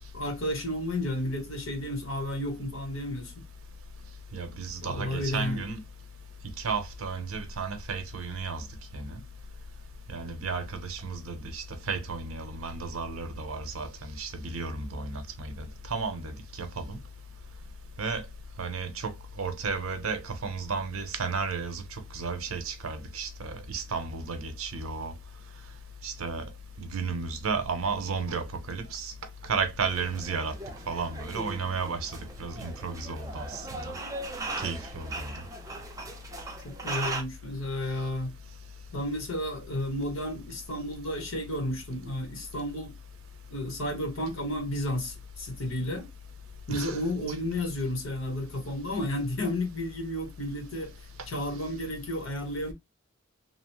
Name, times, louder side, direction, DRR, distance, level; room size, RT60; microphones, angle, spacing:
voice 1, 0.0-3.4 4.8-5.6 36.6-38.4 38.9-42.9 43.5-46.1 46.7-50.9 51.3-52.7, left 1 dB, 75° left, 1.0 m, -32 dB
voice 2, 4.3-5.8 6.6-8.6 8.9-9.2 10.1-17.0 18.0-18.2 18.6-19.1 19.4-21.8 22.1-25.1 26.0-26.5 26.8-29.1 29.5-30.6 30.9-32.1 32.4-33.9 34.6-35.3 46.7-47.0, right 4 dB, 90° right, 0.7 m, -33 dB
sound 1, 29.8-37.2, right 2 dB, 15° right, 0.5 m, -39 dB
2.8 x 2.0 x 2.9 m
head